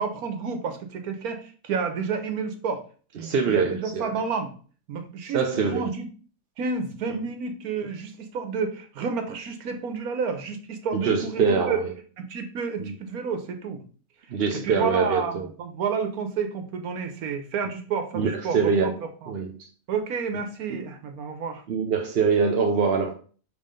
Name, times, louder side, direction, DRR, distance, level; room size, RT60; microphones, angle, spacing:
voice 1, 0.0-2.8 3.2-4.5 4.9-6.1 6.6-11.8 12.2-13.8 14.5-18.9 19.2-19.3 19.9-21.6, right 5 dB, 85° right, 7 dB, 1.4 m, -30 dB
voice 2, 3.2-4.1 5.3-5.9 10.9-11.9 12.8-12.9 14.3-15.5 18.1-19.0 19.3-19.7 20.7-20.8 21.7-23.1, right 5 dB, 55° right, 3 dB, 0.8 m, -24 dB
5.5 x 3.6 x 5.1 m, 0.41 s
omnidirectional pair, 1.5 m